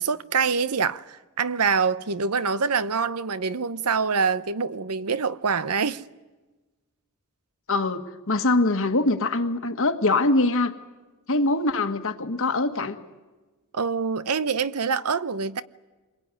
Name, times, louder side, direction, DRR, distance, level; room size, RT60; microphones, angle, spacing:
voice 1, 0.0-6.0 13.7-15.6, right 5 dB, 85° right, 0.8 m, -25 dB
voice 2, 7.7-10.7 11.3-13.0, left 2 dB, 65° left, 1.7 m, -23 dB
27.0 x 22.0 x 9.7 m
head